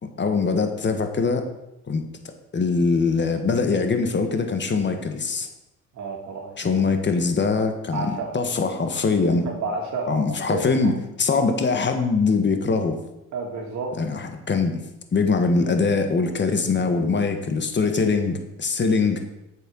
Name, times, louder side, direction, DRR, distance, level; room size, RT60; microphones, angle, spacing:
voice 1, 0.0-1.5 1.9-2.0 2.5-5.5 6.6-9.5 10.1-13.0 14.0-14.8 15.1-19.2, left 4 dB, 40° left, 6 dB, 1.6 m, -22 dB
voice 2, 5.9-6.7 7.9-8.4 9.4-10.9 13.3-14.0, right 4 dB, 70° right, -1 dB, 2.2 m, -31 dB
8.8 x 6.7 x 6.4 m, 0.91 s
cardioid pair, 90°, 30 cm